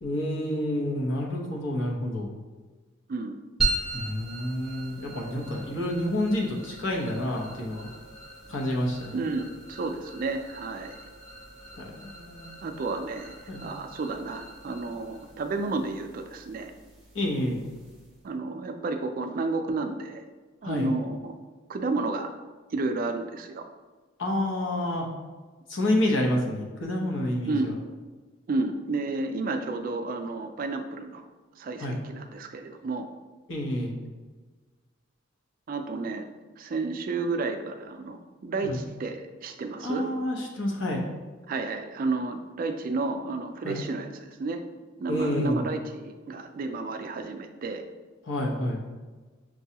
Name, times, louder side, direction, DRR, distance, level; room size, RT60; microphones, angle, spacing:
voice 1, 0.0-2.3 3.9-7.9 8.5-9.2 11.8-12.6 13.5-13.6 17.1-17.6 20.6-20.9 24.2-25.1 25.7-27.7 31.8-32.0 33.5-33.9 38.6-38.8 39.8-41.0 43.6-43.8 45.1-45.7 48.3-48.8, left 1 dB, 65° left, 0 dB, 0.8 m, -29 dB
sound 1, 3.6-18.3, right 3 dB, ahead, 0.8 m, -38 dB
voice 2, 9.1-11.0 12.6-13.3 13.6-16.7 18.2-20.2 20.6-21.4 21.7-22.3 22.7-23.6 27.5-27.7 28.5-31.2 31.6-33.1 35.7-36.2 36.6-40.0 41.5-44.6 45.0-47.8, right 3 dB, 45° right, 6 dB, 0.3 m, -31 dB
6.0 x 2.3 x 2.8 m, 1.3 s
head